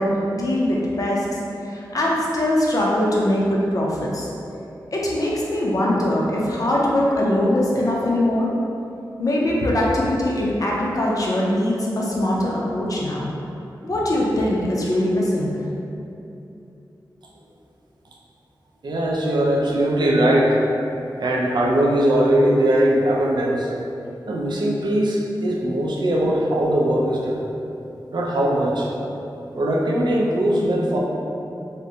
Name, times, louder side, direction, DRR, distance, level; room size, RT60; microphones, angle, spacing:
voice 1, 0.0-4.3 4.9-8.5 9.2-13.3 13.8-15.6, left 1 dB, 45° left, -4 dB, 0.5 m, -22 dB
voice 2, 18.8-20.6 21.2-23.7 24.3-27.4 28.1-28.9 29.5-31.0, right 1 dB, 65° right, -3 dB, 0.4 m, -20 dB
3.6 x 2.1 x 2.7 m, 2.7 s
wide cardioid pair, 95°, 8 cm